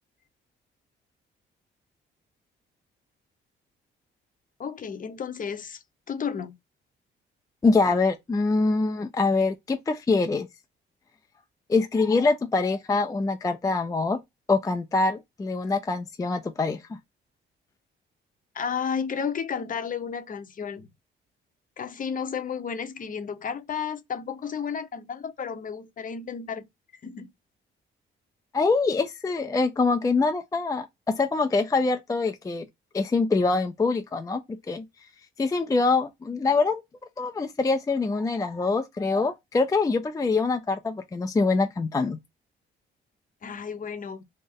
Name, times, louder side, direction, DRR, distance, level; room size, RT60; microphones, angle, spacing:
voice 1, 4.6-6.6 18.5-20.9 21.8-26.6 27.0-27.3 43.4-44.2, left 6 dB, 45° left, 0.7 m, -32 dB
voice 2, 7.6-10.5 11.7-14.2 14.5-17.0 28.5-32.7 32.9-34.4 34.7-34.8 35.4-36.8 37.2-42.2, left 3 dB, 15° left, 0.4 m, -24 dB
3.4 x 2.0 x 3.6 m
cardioid pair, 90°, 20 cm